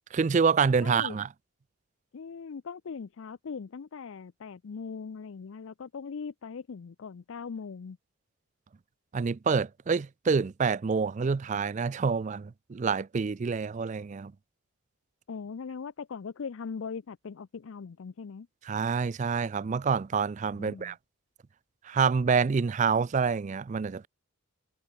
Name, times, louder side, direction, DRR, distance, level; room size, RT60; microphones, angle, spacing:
voice 1, 0.1-1.3 9.1-14.3 18.7-20.9 21.9-24.1, right 5 dB, 35° right, 0.3 m, -27 dB
voice 2, 0.8-1.2 2.1-8.0 15.3-18.5 20.5-21.0, left 5 dB, 65° left, 0.4 m, -40 dB
head